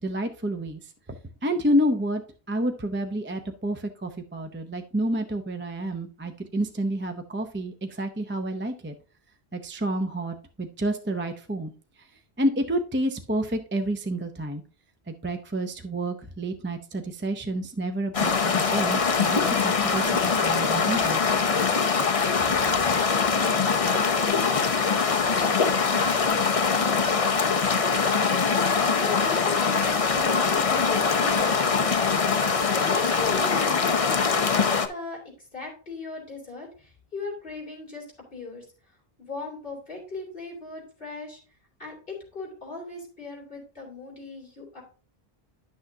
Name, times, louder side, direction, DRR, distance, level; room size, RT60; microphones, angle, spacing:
voice 1, 0.0-0.9 1.4-2.2 2.5-8.9 9.5-11.7 12.4-14.6 15.1-20.1 20.4-21.2, right 1 dB, 15° right, 5 dB, 0.5 m, -29 dB
sound 1, 18.1-34.9, left 5 dB, 40° left, 0.7 m, -23 dB
voice 2, 26.4-27.3 27.9-28.5 28.8-31.8 32.8-38.0 38.3-38.7 39.2-41.4 41.8-44.8, left 3 dB, 55° left, -2 dB, 3.4 m, -38 dB
11.0 x 6.2 x 2.7 m, 0.38 s
omnidirectional pair, 1.1 m